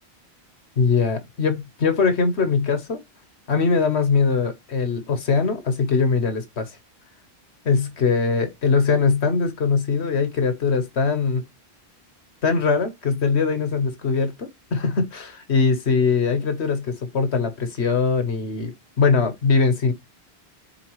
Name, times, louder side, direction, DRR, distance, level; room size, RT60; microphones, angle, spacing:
voice 1, 0.8-3.0 3.5-6.8 7.6-11.4 12.4-19.9, left 5 dB, 85° left, 1.5 m, -21 dB
8.5 x 3.9 x 3.1 m
omnidirectional pair, 1.1 m